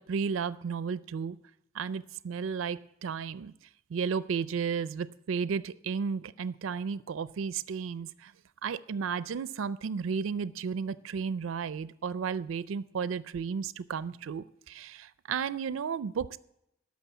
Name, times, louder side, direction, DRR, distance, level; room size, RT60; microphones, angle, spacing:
voice 1, 0.0-1.4 1.7-3.5 3.9-8.3 8.6-16.4, right 6 dB, 80° right, 16 dB, 0.4 m, -33 dB
12.5 x 6.3 x 8.4 m, 0.81 s
head